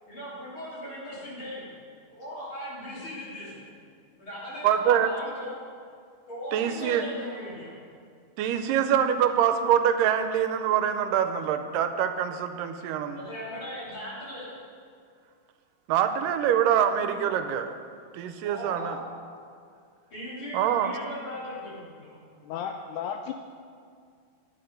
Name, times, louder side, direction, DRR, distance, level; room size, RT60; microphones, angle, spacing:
voice 1, 0.1-1.7 2.1-3.7 4.2-5.6 6.3-7.8 13.1-14.6 18.4-19.1 20.1-22.2, left 1 dB, 40° left, -8 dB, 3.8 m, -38 dB
voice 2, 4.6-5.1 6.5-7.0 8.4-13.2 15.9-17.7 18.1-19.0 20.5-20.9, right 9 dB, 90° right, 8 dB, 2.3 m, -24 dB
voice 3, 22.4-23.3, left 8 dB, 80° left, 5 dB, 1.9 m, -33 dB
10.0 x 8.8 x 5.2 m, 2.2 s
omnidirectional pair, 3.8 m